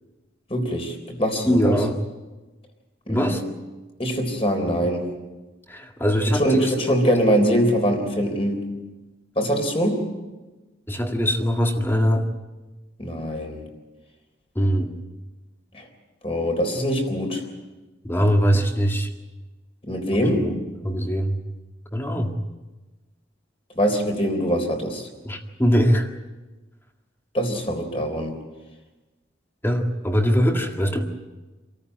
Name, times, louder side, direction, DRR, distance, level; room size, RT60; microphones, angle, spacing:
voice 1, 0.5-1.8 3.1-3.4 4.0-5.1 6.3-8.7 9.4-10.1 13.0-13.7 15.7-15.9 16.2-17.4 19.8-20.5 23.8-25.1 27.3-28.3, equal, 30° left, 4 dB, 3.7 m, -23 dB
voice 2, 1.5-1.9 3.1-3.4 5.7-6.7 10.9-12.3 14.6-14.9 18.0-19.1 20.1-20.5 20.8-21.4 21.9-22.3 25.2-26.1 29.6-31.1, equal, 10° left, 4 dB, 1.9 m, -22 dB
26.5 x 14.0 x 9.7 m, 1.2 s
head